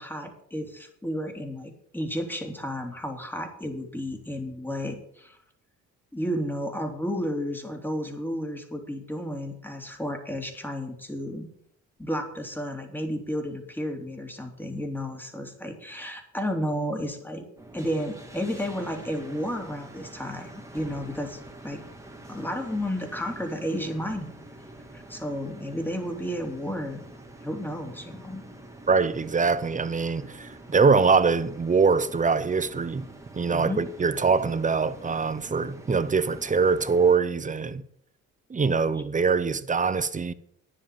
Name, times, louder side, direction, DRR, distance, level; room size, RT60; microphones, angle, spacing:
voice 1, 0.0-5.4 6.1-11.5 12.0-17.4 17.7-21.8 22.3-24.4 24.9-27.0 27.4-28.4 33.5-33.8, equal, 5° left, 3.0 m, -32 dB
sound 1, 17.6-37.2, right 1 dB, 10° right, 1.9 m, -46 dB
voice 2, 28.9-33.1 33.3-37.8 38.5-40.3, right 5 dB, 25° right, 0.8 m, -23 dB
10.0 x 7.7 x 7.6 m
cardioid pair, 90°, 30 cm